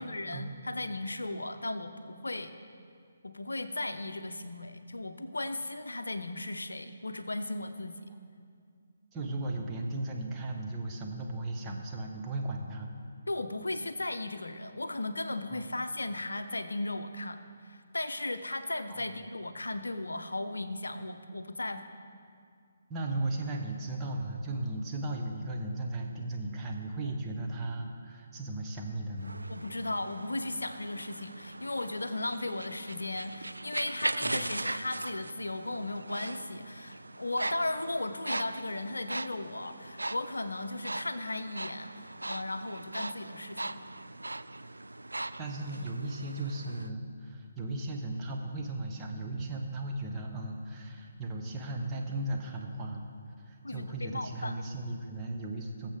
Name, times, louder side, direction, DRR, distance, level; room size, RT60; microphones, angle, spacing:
voice 1, 0.0-2.5 3.2-8.1 13.3-21.8 29.5-43.9 53.6-54.5, left 2 dB, 70° left, 9 dB, 0.7 m, -36 dB
voice 2, 9.1-12.9 15.5-15.6 18.9-19.2 22.9-29.4 34.2-34.5 45.4-53.0 53.4-55.9, right 2 dB, 15° right, 0 dB, 1.1 m, -36 dB
sound 1, 29.2-46.9, right 2 dB, 75° right, 0.3 m, -40 dB
20.5 x 7.5 x 3.6 m, 2.2 s
figure-of-eight pair, 140°, 0 cm